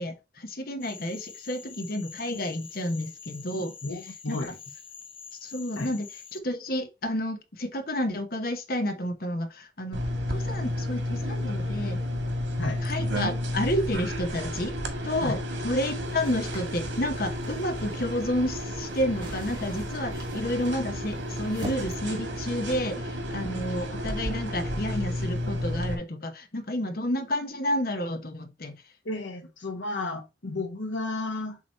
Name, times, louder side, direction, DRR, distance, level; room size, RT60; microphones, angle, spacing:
voice 1, 0.0-3.7 4.3-4.4 5.4-6.1 6.3-10.0 10.3-12.0 12.8-14.7 15.0-15.4 15.6-28.8, left 1 dB, 50° left, 1.0 m, -30 dB
Cricket / Frog, 0.8-6.4, left 6 dB, 30° left, 0.6 m, -46 dB
voice 2, 3.8-4.6 5.7-6.0 12.6-12.8 15.2-15.4 29.0-31.6, left 2 dB, 85° left, 1.3 m, -33 dB
sound 1, 9.9-25.9, equal, 85° right, 1.7 m, -32 dB
sound 2, 16.0-22.0, right 2 dB, 25° right, 2.7 m, -45 dB
7.2 x 3.0 x 4.2 m
head